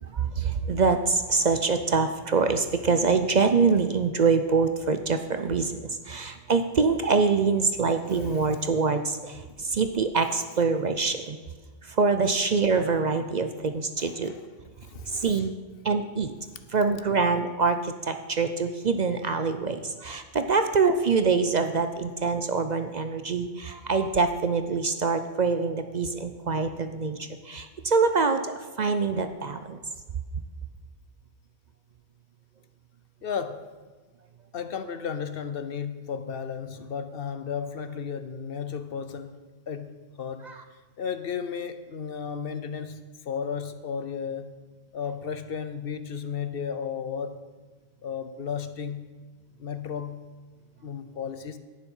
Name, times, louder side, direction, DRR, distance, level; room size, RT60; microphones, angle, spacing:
voice 1, 0.1-5.7 6.1-11.4 12.0-14.3 15.1-15.6 15.8-16.3 16.7-27.2 27.5-28.5 28.8-29.8, right 4 dB, 50° right, 0.7 m, -25 dB
voice 2, 7.7-8.7 10.3-10.4 11.1-11.2 14.0-15.5 19.7-19.8 33.2-33.7 34.5-40.6 41.0-44.6 44.9-47.4 48.0-49.1 49.6-50.3 50.8-51.6, left 7 dB, 60° left, 0.9 m, -34 dB
11.0 x 9.6 x 5.5 m
omnidirectional pair, 1.1 m